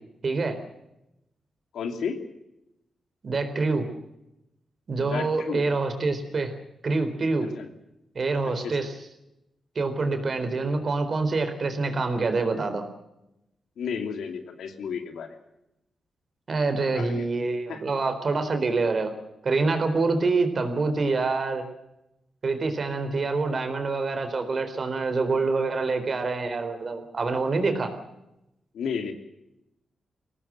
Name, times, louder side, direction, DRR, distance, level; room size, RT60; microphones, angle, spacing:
voice 1, 0.2-0.6 3.2-3.9 4.9-6.5 6.8-7.5 8.1-8.9 9.7-12.8 16.5-19.1 19.4-21.6 22.4-27.9, right 3 dB, 45° right, 8 dB, 4.2 m, -26 dB
voice 2, 1.7-2.2 5.0-5.7 7.4-7.7 8.4-8.8 13.8-15.4 16.9-17.3 17.7-17.8 28.7-29.1, left 6 dB, 90° left, 6 dB, 2.9 m, -33 dB
23.0 x 18.0 x 7.8 m, 0.88 s
cardioid pair, 100°, 0 cm